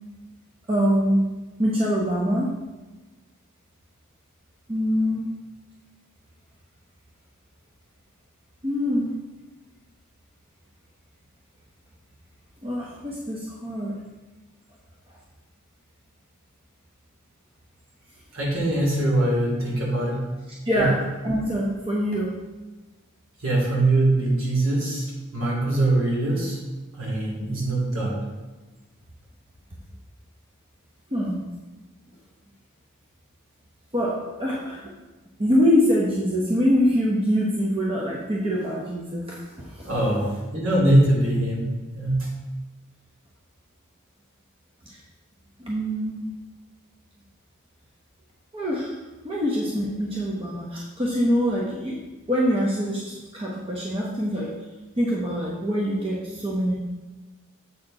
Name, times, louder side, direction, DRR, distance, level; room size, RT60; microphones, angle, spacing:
voice 1, 0.7-1.3 1.6-2.5 4.7-5.3 8.6-9.1 12.6-14.0 20.6-22.4 31.1-31.4 33.9-34.9 35.4-39.9 44.9-45.0 45.6-46.3 48.5-48.9 49.2-52.0 52.3-54.5 55.0-56.7, equal, 25° right, -4 dB, 0.9 m, -24 dB
voice 2, 18.3-20.2 20.8-20.9 23.4-26.6 26.9-28.2 39.8-41.7 41.9-42.3, right 1 dB, 75° right, -4 dB, 2.5 m, -22 dB
7.5 x 4.3 x 4.8 m, 1.2 s
head